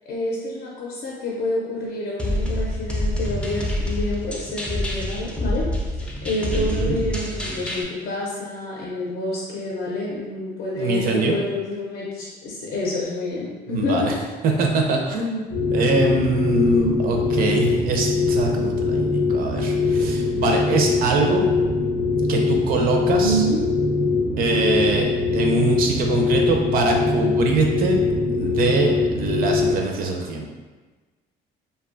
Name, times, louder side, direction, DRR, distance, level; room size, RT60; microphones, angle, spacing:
voice 1, 0.1-5.7 6.2-14.1 23.2-23.6, left 1 dB, 65° left, -4 dB, 0.5 m, -28 dB
sound 1, 2.2-7.8, left 1 dB, 5° left, 0.3 m, -26 dB
voice 2, 6.5-7.0 10.8-11.4 13.7-14.1 14.4-21.5 22.3-23.4 24.4-28.0 28.3-30.5, right 3 dB, 60° right, 1 dB, 0.4 m, -23 dB
sound 2, 15.5-29.7, left 3 dB, 90° right, 0.8 m, -22 dB
2.5 x 2.2 x 2.4 m, 1.3 s
cardioid pair, 110°, 17 cm